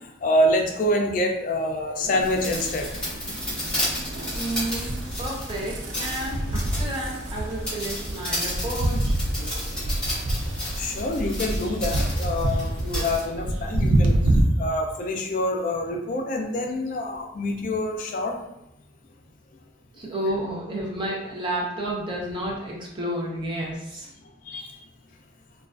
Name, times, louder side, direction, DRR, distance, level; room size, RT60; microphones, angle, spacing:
voice 1, 0.2-2.9 10.8-14.2 14.6-18.3 24.5-24.8, left 1 dB, 45° left, 1 dB, 0.3 m, -26 dB
sound 1, 2.0-14.4, right 1 dB, 80° right, 0.4 m, -28 dB
sound 2, 2.2-13.3, left 1 dB, 5° left, 1.0 m, -33 dB
voice 2, 4.3-9.1 19.9-24.1, right 1 dB, 25° right, -4 dB, 0.5 m, -31 dB
2.3 x 2.2 x 2.3 m, 0.85 s
head